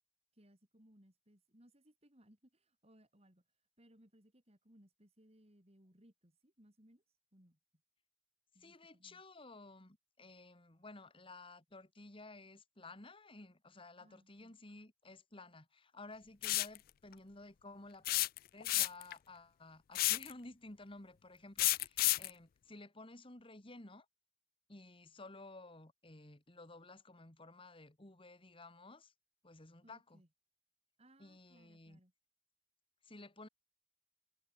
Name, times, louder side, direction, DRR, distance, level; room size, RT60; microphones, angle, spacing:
voice 1, 0.3-3.4 3.8-7.0 7.3-7.6 8.5-9.2 14.0-14.5 29.8-30.3 31.0-32.1, right 1 dB, 35° right, 4.8 m, -66 dB
voice 2, 8.6-18.1 18.5-24.1 24.7-29.1 29.4-30.2 31.2-32.0 33.0-33.5, left 2 dB, 30° left, 2.1 m, -54 dB
sound 1, 16.4-16.8 18.1-19.1 19.9-20.3 21.6-22.3, left 18 dB, 50° left, 0.3 m, -31 dB
head